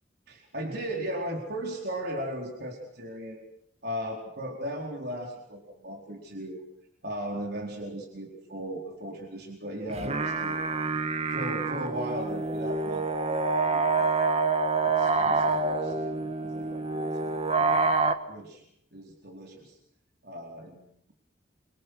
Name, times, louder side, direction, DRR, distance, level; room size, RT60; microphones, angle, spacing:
voice 1, 0.3-3.4 3.8-6.6 7.0-10.6 11.3-14.1 14.8-17.9 18.3-18.6 18.9-19.8 20.2-21.1, equal, 60° right, 0 dB, 4.4 m, -37 dB
sound 1, 9.9-18.1, right 3 dB, 35° right, 1.7 m, -27 dB
28.5 x 25.0 x 6.4 m, 0.74 s
head